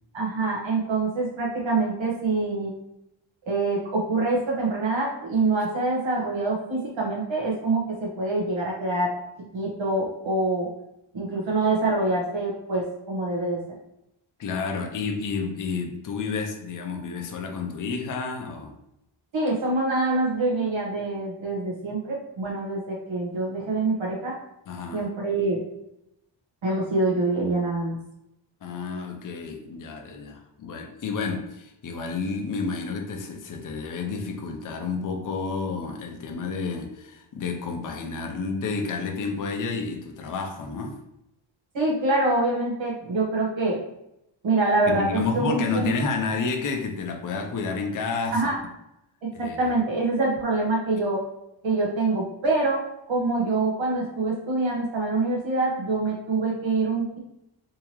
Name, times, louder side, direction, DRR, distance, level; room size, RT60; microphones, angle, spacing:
voice 1, 0.1-2.7 3.5-9.1 9.5-10.7 11.1-13.6 19.3-24.4 24.9-25.6 26.6-28.0 41.7-43.8 44.4-45.9 48.3-48.6 49.2-51.2 51.6-52.8 53.1-57.2, right 2 dB, 65° right, -3 dB, 1.3 m, -25 dB
voice 2, 14.4-18.8 24.7-25.1 28.6-41.0 44.8-48.5 49.3-49.6, left 4 dB, 40° left, 3 dB, 0.6 m, -30 dB
3.6 x 2.9 x 3.0 m, 0.84 s
cardioid pair, 95°, 48 cm